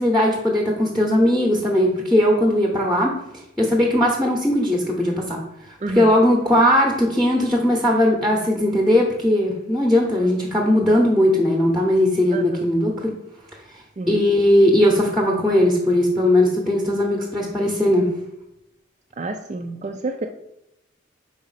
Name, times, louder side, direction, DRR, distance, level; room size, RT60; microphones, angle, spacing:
voice 1, 0.0-3.1 3.6-5.4 5.7-13.1 14.1-18.1, left 1 dB, ahead, 0 dB, 0.8 m, -18 dB
voice 2, 5.8-6.1 10.2-10.3 12.3-12.7 14.0-14.2 19.2-20.3, right 2 dB, 35° right, 3 dB, 0.4 m, -29 dB
4.8 x 4.2 x 5.6 m, 0.84 s
head